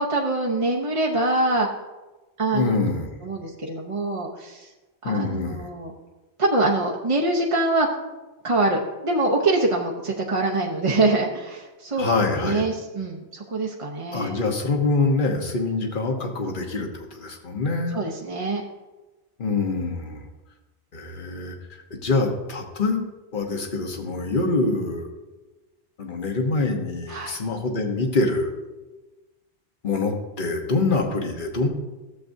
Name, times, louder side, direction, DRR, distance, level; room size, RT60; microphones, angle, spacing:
voice 1, 0.0-1.7 2.4-2.8 3.2-4.7 5.0-5.9 6.4-7.9 8.4-12.0 12.4-14.4 17.9-18.6 27.1-27.4, right 2 dB, 35° right, -2 dB, 0.8 m, -24 dB
voice 2, 2.5-3.1 5.0-5.6 12.0-12.7 14.1-18.0 19.4-20.2 20.9-21.5 21.9-23.0 23.3-25.1 26.0-28.5 29.8-31.7, left 3 dB, 50° left, 3 dB, 1.3 m, -25 dB
14.0 x 7.6 x 2.7 m, 1.1 s
omnidirectional pair, 1.1 m